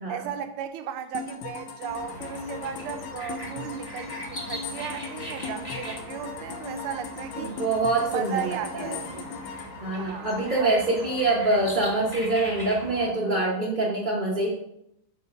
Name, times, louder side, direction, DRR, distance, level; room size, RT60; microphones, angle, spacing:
voice 1, 0.1-7.6 8.0-9.5 9.9-11.2, right 9 dB, 85° right, 1.6 m, -36 dB
sound 1, 1.1-10.9, left 5 dB, 75° left, 1.6 m, -38 dB
sound 2, 1.9-13.1, equal, 15° left, 1.0 m, -40 dB
voice 2, 7.4-9.0 9.8-14.5, right 2 dB, 45° right, 0.6 m, -25 dB
7.4 x 3.9 x 5.1 m
omnidirectional pair, 2.3 m